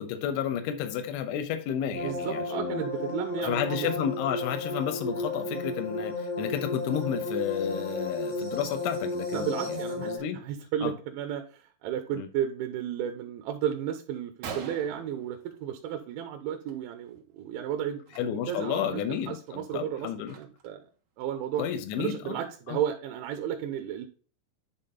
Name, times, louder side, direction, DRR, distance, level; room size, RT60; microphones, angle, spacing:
voice 1, 0.0-2.8 3.4-10.4 10.8-10.9 12.2-12.3 18.2-20.4 21.6-22.4 22.7-22.8, left 9 dB, 80° left, 3.4 m, -32 dB
sound 1, 1.9-10.2, left 2 dB, 50° left, 0.8 m, -33 dB
voice 2, 1.9-3.9 9.3-19.0 19.3-20.8 21.2-21.7 22.0-24.1, right 10 dB, 80° right, 3.0 m, -33 dB
Gunshot gunfire, 14.4-16.0 16.4-16.7 17.0-17.2 18.0-18.2 18.7-18.8 19.3-20.8, right 5 dB, 65° right, 1.9 m, -44 dB
10.5 x 3.9 x 3.7 m
omnidirectional pair, 5.5 m